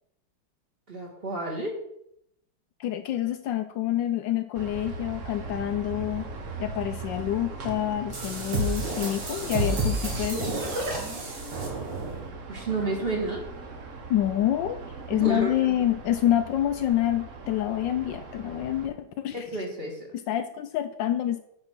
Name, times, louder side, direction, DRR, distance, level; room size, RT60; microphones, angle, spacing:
voice 1, 0.9-1.8 12.5-13.4 15.1-15.5 19.3-20.1, right 2 dB, 30° right, -1 dB, 1.8 m, -30 dB
voice 2, 2.8-6.3 6.6-10.5 14.1-14.8 15.1-19.5 20.1-21.4, left 12 dB, 75° left, 9 dB, 1.2 m, -27 dB
sound 1, 4.5-18.9, right 4 dB, 45° right, 1.2 m, -40 dB
sound 2, 8.1-12.3, right 2 dB, 70° right, 2.5 m, -30 dB
9.7 x 4.4 x 6.0 m, 0.76 s
omnidirectional pair, 2.1 m